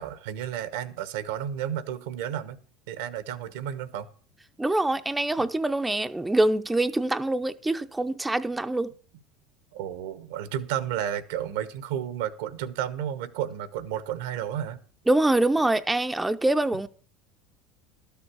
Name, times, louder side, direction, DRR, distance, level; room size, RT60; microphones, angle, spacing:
voice 1, 0.0-2.6 2.9-4.1 9.7-14.8, right 10 dB, 75° right, 1.0 m, -32 dB
voice 2, 4.6-8.9 15.1-16.9, right 2 dB, 10° right, 0.6 m, -24 dB
12.5 x 7.1 x 6.1 m
hypercardioid pair, 90°, 0 cm